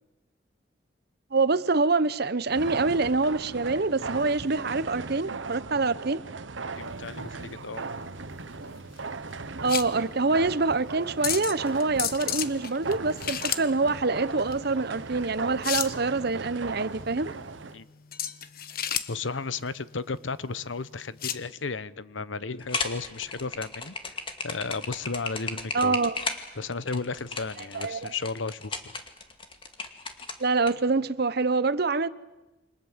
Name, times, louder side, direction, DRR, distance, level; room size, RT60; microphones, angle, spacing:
voice 1, 1.3-6.2 9.6-17.3 25.7-26.2 27.7-28.1 30.4-32.1, right 3 dB, 55° right, 1.0 m, -25 dB
sound 1, 2.5-17.8, right 4 dB, 85° right, 1.1 m, -38 dB
voice 2, 6.8-7.8 17.7-17.9 19.1-24.2 24.4-26.0 26.6-28.9, left 4 dB, 90° left, 1.0 m, -34 dB
sound 2, 6.8-21.5, left 10 dB, 55° left, 1.2 m, -35 dB
sound 3, 22.6-30.7, left 4 dB, 30° left, 2.3 m, -35 dB
28.5 x 25.5 x 7.5 m
head